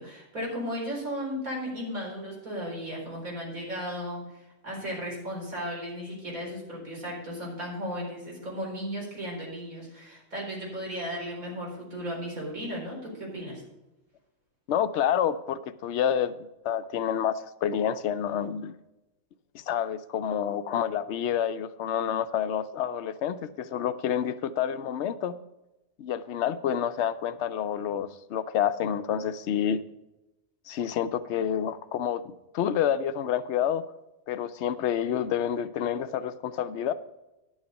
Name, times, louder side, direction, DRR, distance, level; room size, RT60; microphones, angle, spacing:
voice 1, 0.0-13.6, equal, 85° right, -2 dB, 4.7 m, -35 dB
voice 2, 14.7-16.3 16.6-18.7 19.5-25.3 26.0-29.8 30.7-33.8 34.3-36.9, left 9 dB, 60° left, 12 dB, 0.9 m, -28 dB
11.0 x 7.3 x 5.3 m, 0.99 s
omnidirectional pair, 1.4 m